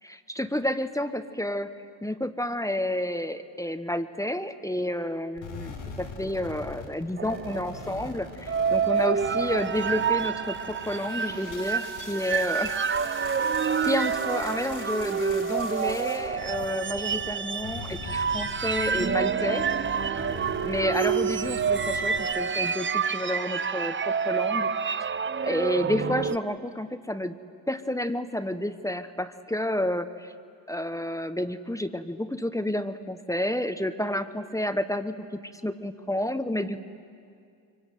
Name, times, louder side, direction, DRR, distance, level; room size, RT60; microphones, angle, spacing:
voice 1, 0.0-1.7 2.0-12.8 13.8-19.6 20.6-25.1 25.4-27.4 27.7-30.3 30.7-36.8, left 1 dB, 5° left, 10 dB, 1.1 m, -30 dB
sound 1, 5.4-17.3 17.6-22.2, left 4 dB, 85° left, 5.3 m, -42 dB
sound 2, 7.2-26.4, right 6 dB, 25° right, 0.6 m, -28 dB
24.5 x 24.0 x 9.4 m, 2.3 s
cardioid pair, 85°, 50 cm